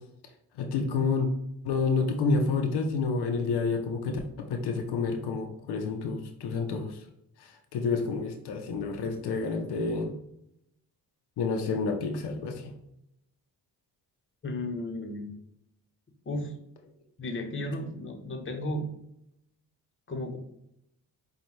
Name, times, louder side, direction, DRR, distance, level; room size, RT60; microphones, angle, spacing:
voice 1, 0.6-1.3 1.6-7.0 7.4-10.1 11.4-12.7, left 4 dB, 85° left, 4 dB, 0.6 m, -29 dB
voice 2, 14.4-15.3 16.2-16.5 17.2-18.9 20.1-20.4, left 1 dB, 30° left, 2 dB, 1.0 m, -34 dB
5.2 x 2.3 x 3.1 m, 0.79 s
cardioid pair, 65°, 39 cm